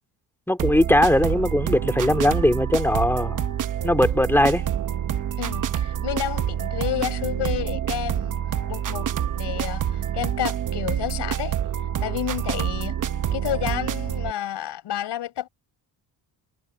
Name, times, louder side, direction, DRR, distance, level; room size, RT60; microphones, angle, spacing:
voice 1, 0.5-3.5 3.8-4.6, left 1 dB, 5° left, 2.8 m, -20 dB
sound 1, 0.6-14.3, right 9 dB, 45° right, 1.1 m, -27 dB
voice 2, 5.4-8.3 8.7-11.6 12.0-13.0 13.3-15.5, left 12 dB, 70° left, 6.7 m, -30 dB
cardioid pair, 145°, 42 cm